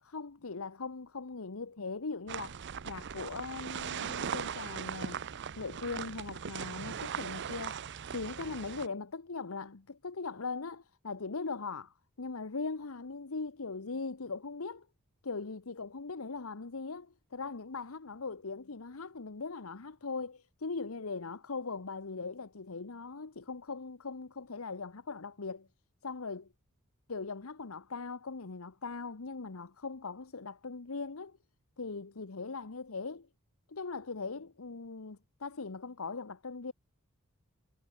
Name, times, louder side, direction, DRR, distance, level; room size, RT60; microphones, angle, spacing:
voice 1, 0.0-2.6 2.8-5.2 5.6-7.8 8.1-14.9 15.2-25.7 26.0-26.5 27.1-31.4 31.8-33.3 33.7-36.7, left 4 dB, 80° left, 1.0 m, -40 dB
sound 1, 2.3-8.9, right 7 dB, 55° right, 0.6 m, -39 dB
head